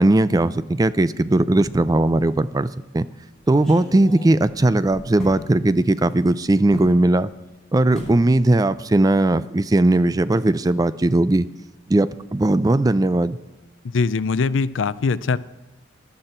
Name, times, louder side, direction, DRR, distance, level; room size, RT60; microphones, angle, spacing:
voice 1, 0.0-3.1 3.5-7.3 7.7-11.5 11.9-13.4, right 2 dB, 20° right, 15 dB, 0.4 m, -18 dB
sound 1, 1.7-2.1 2.5-2.6 3.4-5.4 6.7-7.0 7.9-8.2 8.5-8.9 9.1-9.3, equal, 5° left, 5.9 m, -37 dB
voice 2, 13.9-15.4, left 4 dB, 85° left, 17 dB, 0.5 m, -21 dB
14.5 x 11.5 x 4.4 m, 1.1 s
head